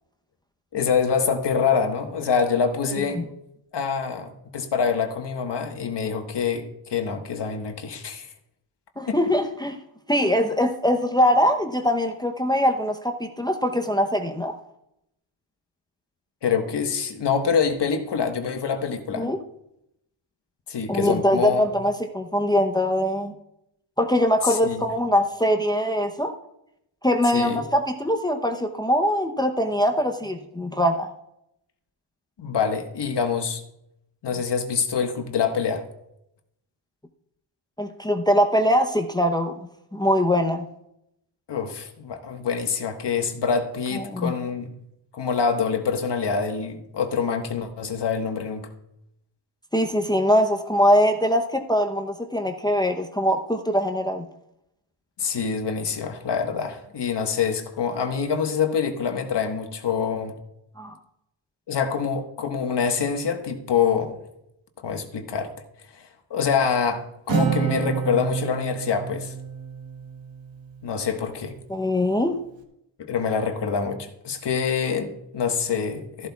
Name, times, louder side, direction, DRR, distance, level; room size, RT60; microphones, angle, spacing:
voice 1, 0.7-3.2 3.7-8.3 9.1-9.2 16.4-19.3 20.7-21.7 24.4-24.8 27.3-27.6 32.4-33.6 34.2-35.8 41.5-44.7 45.1-48.7 55.2-60.3 61.7-64.2 64.8-65.5 65.9-69.3 70.8-71.5 73.0-76.3, left 6 dB, 55° left, 5 dB, 1.5 m, -25 dB
voice 2, 9.0-9.8 10.1-14.5 19.2-19.4 20.9-23.3 24.0-26.3 27.0-31.1 37.8-40.6 43.9-44.3 49.7-54.2 60.8-61.0 71.7-72.4, equal, 10° left, 4 dB, 0.8 m, -22 dB
Acoustic guitar, 67.3-70.9, right 6 dB, 65° right, 1.5 m, -28 dB
13.5 x 12.0 x 2.4 m, 0.82 s
cardioid pair, 85°, 49 cm